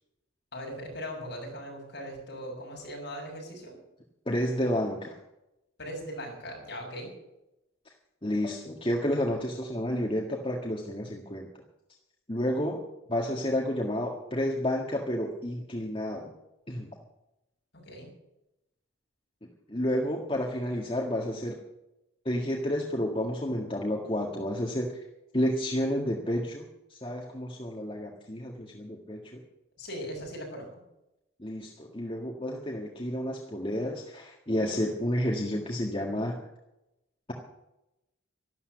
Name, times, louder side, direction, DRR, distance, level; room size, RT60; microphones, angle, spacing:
voice 1, 0.5-3.7 5.8-7.1 17.7-18.1 29.8-30.7, equal, 55° left, 0 dB, 7.0 m, -39 dB
voice 2, 4.2-5.2 8.2-11.5 12.3-12.8 13.1-16.3 16.7-16.9 19.7-21.6 22.2-25.0 25.3-29.4 31.4-36.4, equal, 25° left, 0 dB, 1.7 m, -30 dB
12.5 x 12.5 x 7.9 m, 0.90 s
head